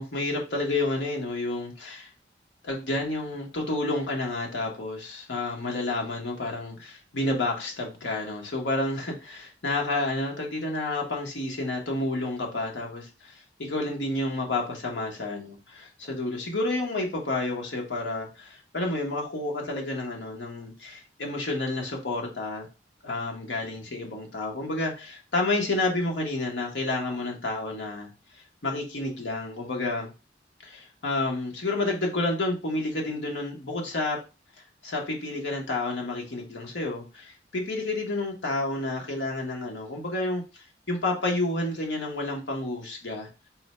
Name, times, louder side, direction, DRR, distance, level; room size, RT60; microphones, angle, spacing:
voice 1, 0.0-2.1 2.6-22.7 23.0-28.1 28.3-30.1 30.6-34.2 34.8-43.3, left 2 dB, 85° left, 0 dB, 1.1 m, -30 dB
4.3 x 2.2 x 4.1 m, 0.30 s
head